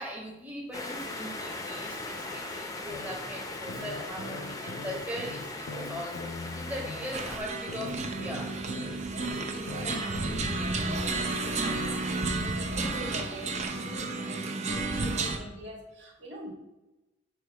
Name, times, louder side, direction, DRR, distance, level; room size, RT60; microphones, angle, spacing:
voice 1, 0.0-9.0 14.5-14.6, equal, 10° right, -2 dB, 0.9 m, -40 dB
sound 1, 0.7-7.4, left 2 dB, 15° left, 0.6 m, -39 dB
sound 2, 2.9-3.2 3.7-7.2 7.7-11.2 11.7-11.9, left 2 dB, 80° left, 0.6 m, -41 dB
sound 3, 7.1-15.4, right 3 dB, 35° right, 0.6 m, -32 dB
voice 2, 9.5-16.5, right 1 dB, 60° right, -2 dB, 1.6 m, -44 dB
7.1 x 4.4 x 3.4 m, 1.0 s
head